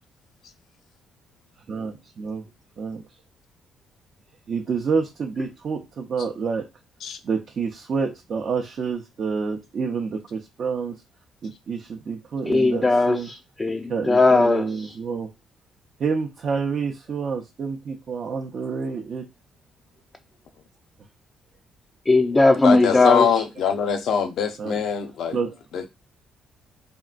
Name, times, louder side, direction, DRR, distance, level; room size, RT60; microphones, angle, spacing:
voice 1, 1.7-2.5 2.8-3.0 4.5-6.7 7.2-11.0 11.4-13.3 13.9-15.3 16.0-19.3 21.0-21.1 24.6-24.8 25.3-25.5, right 5 dB, 55° right, 0.5 m, -28 dB
voice 2, 12.5-14.9 22.1-23.3, left 3 dB, 20° left, 0.3 m, -18 dB
voice 3, 22.6-25.4 25.7-25.9, left 7 dB, 75° left, 0.5 m, -23 dB
3.6 x 2.1 x 2.4 m
cardioid pair, 90°, 0 cm